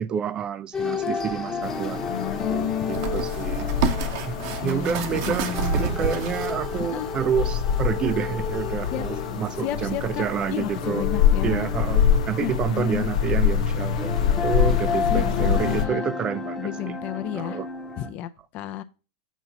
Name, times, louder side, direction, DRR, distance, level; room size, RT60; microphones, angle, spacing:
voice 1, 0.0-2.2 2.5-3.7 4.3-5.5 5.7-11.1 11.4-16.9 17.3-17.7 18.0-18.1, right 8 dB, 25° right, 0.3 m, -29 dB
sound 1, 0.7-18.1, left 4 dB, 15° left, 0.9 m, -33 dB
sound 2, 1.1-1.2 2.8-6.8 7.5-7.6, right 6 dB, 55° right, 0.9 m, -29 dB
sound 3, 1.6-15.8, left 8 dB, 80° left, 0.7 m, -26 dB
voice 2, 2.1-3.1 4.6-6.3 6.9-7.1 8.9-9.0 9.6-10.3 10.5-11.7 12.4-13.0 15.1-16.0 16.6-17.6 18.0-18.8, left 10 dB, 40° left, 0.4 m, -32 dB
7.1 x 2.8 x 5.4 m
supercardioid pair, 130°, 3 cm